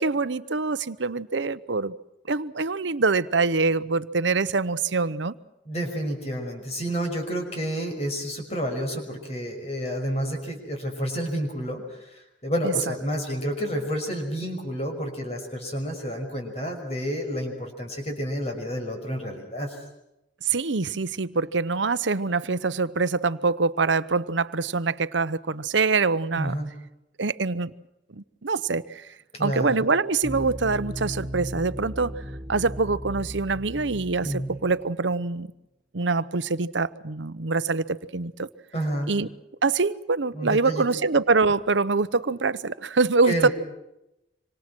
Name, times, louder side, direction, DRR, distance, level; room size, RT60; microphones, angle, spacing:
voice 1, 0.0-1.9 2.3-5.3 12.6-12.7 20.4-26.6 27.2-27.7 28.1-29.1 29.4-32.1 32.5-35.5 35.9-38.5 39.1-39.3 39.6-43.5, right 4 dB, 80° right, 0.9 m, -24 dB
voice 2, 5.7-19.8 26.4-26.7 29.3-29.8 34.2-34.5 38.7-39.1 40.3-40.8 43.3-43.5, equal, 35° left, 5.9 m, -30 dB
sound 1, 30.2-35.3, equal, 25° right, 1.7 m, -36 dB
26.5 x 26.0 x 6.2 m
head